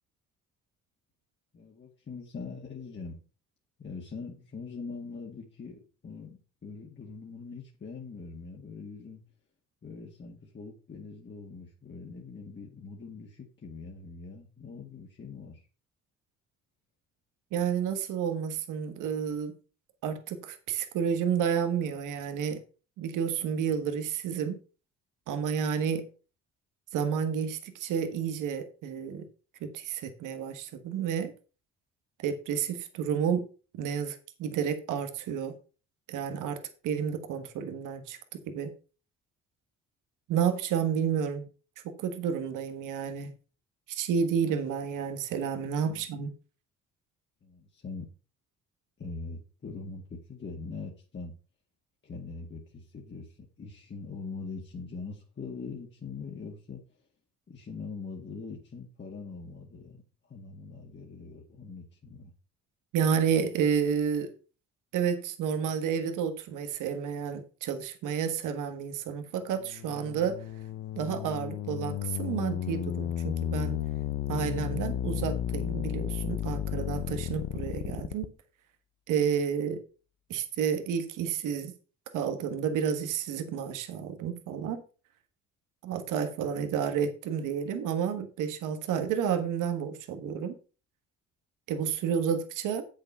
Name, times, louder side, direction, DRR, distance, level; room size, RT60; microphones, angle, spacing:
voice 1, 1.5-3.2 3.8-9.2 9.8-15.6 45.4-46.0 47.4-48.1 49.0-51.3 52.0-56.8 57.5-60.0 60.3-62.3, left 4 dB, 40° left, 2.1 m, -42 dB
voice 2, 17.5-19.5 20.0-22.6 23.0-24.6 25.3-26.0 26.9-29.3 29.6-31.3 32.2-33.4 33.8-35.5 36.1-38.7 40.3-41.5 41.8-43.3 43.9-46.3 62.9-64.3 64.9-70.4 71.0-73.8 74.3-78.3 79.1-79.8 80.3-81.7 82.1-84.8 85.8-90.6 91.7-92.8, right 7 dB, 90° right, 1.4 m, -30 dB
sound 1, 69.5-78.3, left 10 dB, 65° left, 0.9 m, -33 dB
8.4 x 6.7 x 5.4 m
cardioid pair, 90°, 30 cm